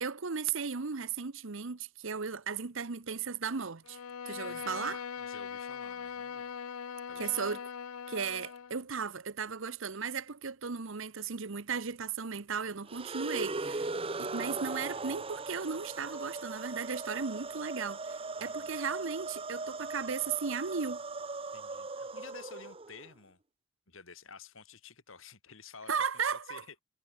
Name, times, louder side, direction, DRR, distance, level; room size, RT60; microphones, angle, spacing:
voice 1, 0.0-4.0 4.3-5.0 7.2-7.6 8.1-13.9 14.2-21.0 25.9-26.6, right 6 dB, 65° right, 0.9 m, -36 dB
Bowed string instrument, 3.8-8.8, left 6 dB, 85° left, 0.6 m, -41 dB
voice 2, 4.5-4.8 5.2-6.5 7.1-7.5 18.4-18.8 21.5-23.4 23.9-26.8, left 5 dB, 65° left, 3.0 m, -52 dB
sound 1, 12.9-23.1, right 3 dB, 25° right, 0.9 m, -39 dB
head